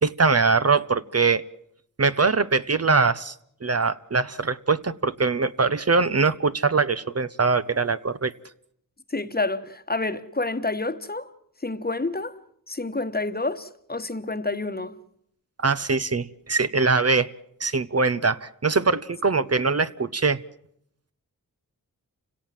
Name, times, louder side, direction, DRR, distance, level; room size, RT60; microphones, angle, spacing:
voice 1, 0.0-1.4 2.0-3.3 3.6-8.3 15.6-17.3 17.6-20.4, right 4 dB, 45° right, 0.9 m, -22 dB
voice 2, 9.1-11.3 11.6-12.4 12.7-14.9, left 2 dB, 25° left, 1.3 m, -28 dB
29.5 x 17.5 x 7.6 m
cardioid pair, 55°, 36 cm